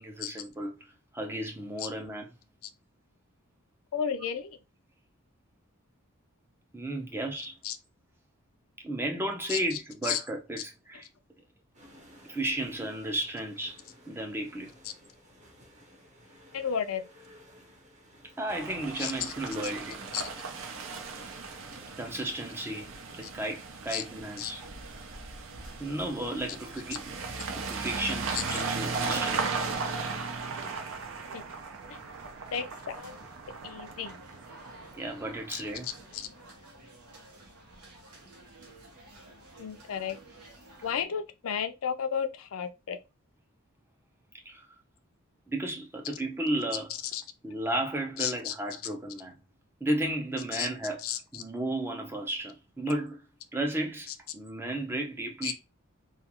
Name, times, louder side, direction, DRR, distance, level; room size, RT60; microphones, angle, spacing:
voice 1, 0.0-2.3 6.7-7.6 8.8-11.1 12.3-13.8 14.1-14.7 18.4-20.0 22.0-24.6 25.8-27.2 27.5-29.6 35.0-35.9 44.5-44.7 45.5-46.9 47.4-49.4 49.8-51.0 51.3-53.2 53.5-55.5, right 1 dB, 10° right, 0.5 m, -34 dB
voice 2, 3.9-4.6 7.6-7.8 9.5-9.6 10.0-10.2 16.5-17.1 19.0-19.6 20.1-20.2 23.9-24.0 24.4-24.5 28.3-28.4 31.3-31.4 32.5-33.2 33.6-34.2 35.5-36.3 39.6-40.2 40.8-43.0 47.1-47.2 48.2-48.5 50.5-50.7 51.0-51.4 55.4-55.5, left 8 dB, 75° left, 0.4 m, -33 dB
sound 1, 11.7-23.5, equal, 30° right, 0.8 m, -55 dB
sound 2, 18.5-36.1, right 4 dB, 60° right, 0.5 m, -37 dB
sound 3, 24.4-41.0, right 1 dB, 90° right, 0.8 m, -54 dB
2.4 x 2.3 x 2.8 m
head